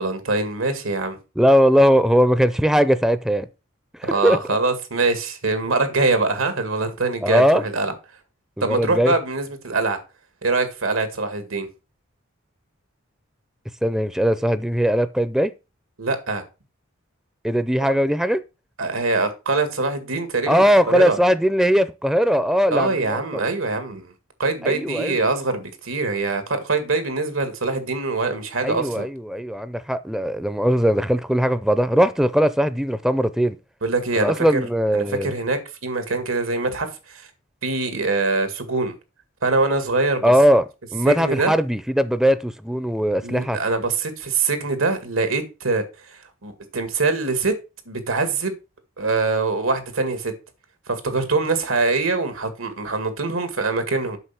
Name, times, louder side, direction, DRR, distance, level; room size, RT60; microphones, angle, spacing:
voice 1, 0.0-1.2 4.1-7.9 8.6-10.0 10.4-11.7 16.0-16.4 18.8-21.2 22.7-24.1 24.4-29.1 33.8-34.6 34.9-37.3 37.6-39.0 39.4-40.3 41.1-41.5 43.2-45.8 46.1-47.6 47.9-48.5 49.0-50.3 50.9-54.2, right 3 dB, 90° right, 2.1 m, -23 dB
voice 2, 1.4-3.5 4.0-4.4 7.2-7.6 8.6-9.1 13.8-15.5 17.4-18.4 20.5-23.2 24.6-25.2 28.6-33.6 34.2-35.3 40.2-40.6 40.9-43.6, equal, 5° right, 0.5 m, -19 dB
8.0 x 6.0 x 5.8 m
head